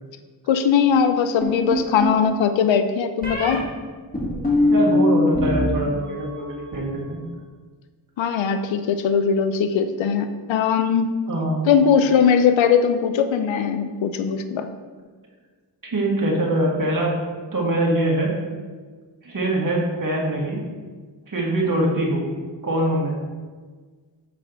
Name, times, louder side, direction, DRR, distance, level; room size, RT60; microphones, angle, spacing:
voice 1, 0.5-3.7 8.2-11.2 11.7-14.7, left 7 dB, 75° left, 9 dB, 0.6 m, -20 dB
sound 1, 1.4-2.2 3.2-3.6 4.1-5.7 6.0-6.5, left 2 dB, 20° left, 1.9 m, -21 dB
voice 2, 4.7-7.2 11.3-11.7 15.8-17.1 17.5-18.3 19.2-20.6 21.3-22.2 22.6-23.2, right 1 dB, 45° right, -2 dB, 1.8 m, -23 dB
6.6 x 4.1 x 4.0 m, 1.5 s
cardioid pair, 55°, 46 cm